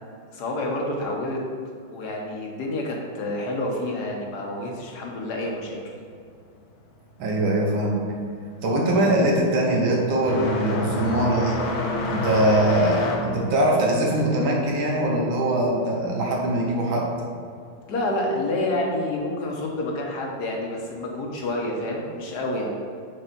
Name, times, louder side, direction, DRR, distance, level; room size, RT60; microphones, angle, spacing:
voice 1, 0.3-1.4 1.9-5.8 17.9-22.8, left 1 dB, 60° left, -1 dB, 1.4 m, -28 dB
voice 2, 7.2-8.1 8.6-11.6 12.1-17.1, right 1 dB, 70° right, -1 dB, 1.8 m, -22 dB
sound 1, 7.6-8.0 8.3-16.6 16.9-17.9 18.9-19.0 19.8-19.9 21.7-21.8, left 2 dB, 75° left, 1.7 m, -30 dB
5.3 x 4.7 x 5.8 m, 2.3 s
omnidirectional pair, 2.3 m